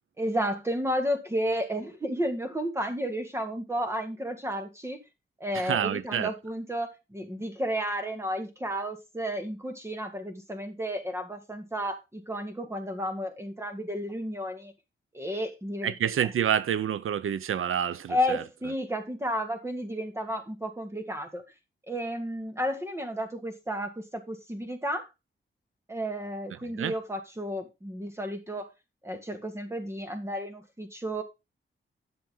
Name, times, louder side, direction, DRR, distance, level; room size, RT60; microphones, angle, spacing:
voice 1, 0.2-5.0 5.4-14.7 15.1-15.9 18.1-21.4 21.9-25.1 25.9-28.7 29.0-31.2, equal, 15° right, 1.8 m, -32 dB
voice 2, 5.5-6.3 15.8-18.4 26.8-26.9, right 9 dB, 90° right, 0.6 m, -28 dB
10.5 x 6.8 x 3.8 m
wide cardioid pair, 155°, 21 cm